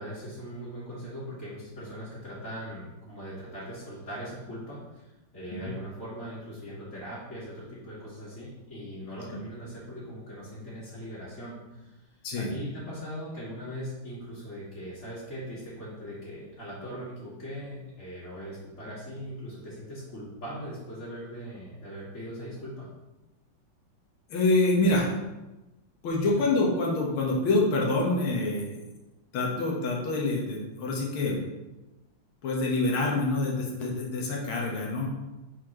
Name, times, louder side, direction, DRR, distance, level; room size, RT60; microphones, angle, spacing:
voice 1, 0.0-22.9 26.2-26.4, equal, 40° left, -12 dB, 2.4 m, -40 dB
voice 2, 24.3-25.1 26.0-28.8 29.3-31.4 32.4-35.1, left 2 dB, 75° left, -2 dB, 2.1 m, -26 dB
9.3 x 4.5 x 3.1 m, 1.0 s
omnidirectional pair, 2.3 m